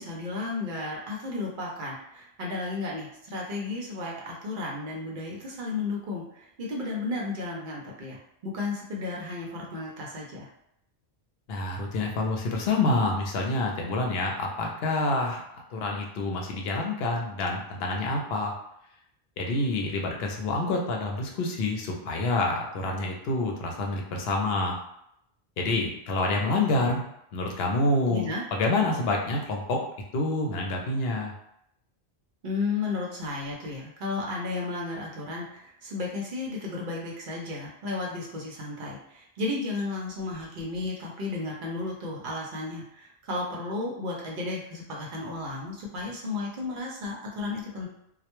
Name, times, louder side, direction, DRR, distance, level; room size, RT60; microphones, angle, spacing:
voice 1, 0.0-10.5 28.1-28.4 32.4-47.9, left 3 dB, 60° right, -2 dB, 0.7 m, -33 dB
voice 2, 11.5-18.5 19.4-24.8 25.6-27.0 27.3-29.8 30.1-31.3, left 2 dB, 75° left, 1 dB, 0.8 m, -27 dB
2.1 x 2.1 x 2.9 m, 0.75 s
omnidirectional pair, 1.1 m